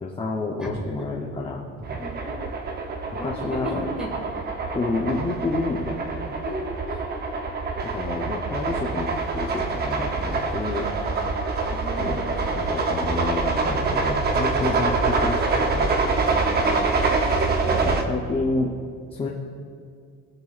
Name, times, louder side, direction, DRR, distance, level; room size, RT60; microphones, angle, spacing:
voice 1, 0.0-1.7 3.2-3.9 4.7-6.2 7.8-10.9 12.0-12.2 12.5-16.0 17.6-18.7 19.1-19.3, left 3 dB, 20° left, -3 dB, 0.7 m, -29 dB
sound 1, 1.8-18.0, right 3 dB, 30° right, 0.7 m, -25 dB
voice 2, 2.0-2.4 3.2-4.1 6.3-7.1 11.7-12.5 16.3-16.9, left 1 dB, 5° right, -2 dB, 1.9 m, -36 dB
20.5 x 7.9 x 2.4 m, 2.2 s
cardioid pair, 170°, 31 cm